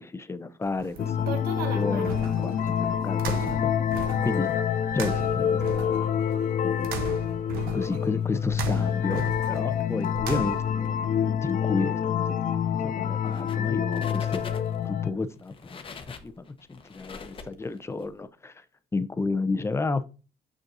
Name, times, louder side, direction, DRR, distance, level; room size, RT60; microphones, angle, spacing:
voice 1, 0.0-1.4 1.7-3.7 4.2-4.5 4.9-6.1 6.6-7.0 7.7-14.4 14.8-18.6 18.9-20.0, left 3 dB, 15° left, 0.7 m, -32 dB
sound 1, 0.7-10.9, right 5 dB, 80° right, 1.0 m, -37 dB
sound 2, 1.0-15.1, left 8 dB, 55° left, 0.7 m, -27 dB
sound 3, 13.3-13.7 13.9-14.9 15.4-18.1, left 5 dB, 35° left, 1.0 m, -42 dB
6.3 x 6.2 x 2.7 m
supercardioid pair, 80°, 15 cm